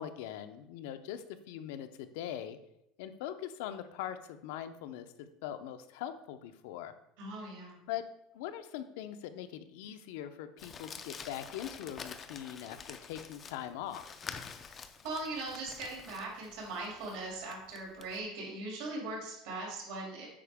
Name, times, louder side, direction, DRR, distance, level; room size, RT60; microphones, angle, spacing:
voice 1, 0.0-2.6 3.0-6.9 7.9-8.0 8.3-14.0, left 11 dB, 70° left, 10 dB, 0.6 m, -41 dB
voice 2, 7.2-7.8 14.7-14.8 15.0-20.3, right 2 dB, 65° right, -3 dB, 2.7 m, -40 dB
Crumpling crinkling, 10.6-18.2, left 6 dB, 20° left, 0.4 m, -48 dB
8.5 x 5.1 x 3.5 m, 0.82 s
cardioid pair, 170°, 0 cm